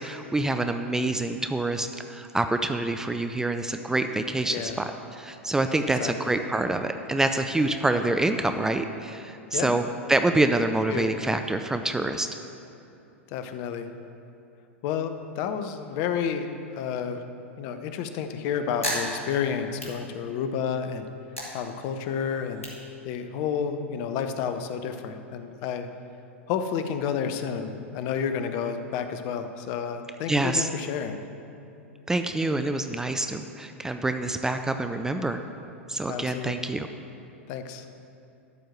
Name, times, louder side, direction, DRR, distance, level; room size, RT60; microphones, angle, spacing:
voice 1, 0.0-9.8 10.1-12.3 30.3-30.7 32.1-35.4 35.9-36.9, right 2 dB, 10° right, 7 dB, 0.4 m, -26 dB
voice 2, 13.3-13.9 14.8-17.2 17.6-21.1 21.5-22.7 23.0-25.9 26.5-31.2 36.0-36.5 37.5-37.9, left 7 dB, 45° left, 8 dB, 0.8 m, -30 dB
sound 1, 18.6-20.7 21.0-23.7, equal, 90° left, 2.3 m, -36 dB
12.0 x 4.7 x 7.6 m, 2.8 s
figure-of-eight pair, 95°, 7 cm